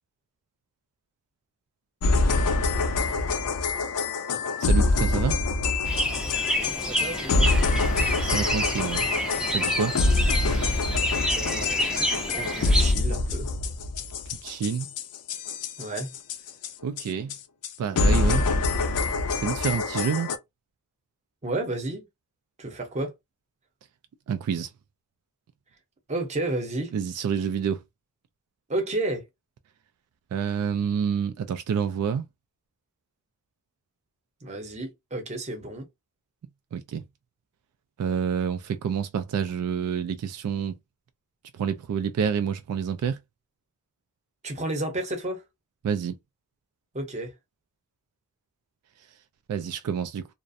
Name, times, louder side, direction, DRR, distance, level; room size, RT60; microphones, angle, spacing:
sound 1, 2.0-16.7 17.0-17.1 17.3-17.4 17.6-17.7 18.0-20.4, left 3 dB, 90° left, 0.5 m, -25 dB
voice 1, 4.6-5.4 8.2-9.1 9.5-9.9 14.4-14.9 16.8-17.3 17.8-18.4 19.4-20.3 24.3-24.7 26.9-27.8 30.3-32.2 36.7-37.0 38.0-40.7 41.5-43.2 45.8-46.2 49.5-50.3, right 7 dB, 75° right, 0.3 m, -28 dB
sound 2, 5.9-12.9, equal, 5° right, 0.4 m, -29 dB
voice 2, 6.6-7.5 11.3-13.5 15.8-16.1 21.4-22.0 22.6-23.1 26.1-26.9 28.7-29.3 34.4-35.9 44.4-45.4 46.9-47.3, right 2 dB, 30° right, 0.7 m, -32 dB
2.4 x 2.0 x 2.6 m
head